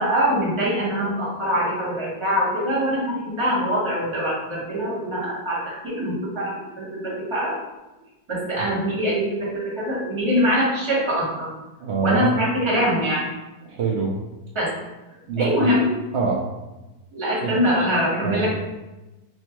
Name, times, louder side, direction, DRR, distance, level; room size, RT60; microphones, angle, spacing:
voice 1, 0.0-7.5 8.3-11.5 12.0-13.3 14.5-14.7 15.4-15.9 17.1-18.5, equal, 25° right, -6 dB, 0.8 m, -23 dB
voice 2, 11.8-12.5 13.6-14.2 15.3-15.7 16.1-16.4 17.4-17.6 18.2-18.5, right 4 dB, 85° right, -3 dB, 0.6 m, -25 dB
4.4 x 2.2 x 2.9 m, 1.0 s
omnidirectional pair, 1.8 m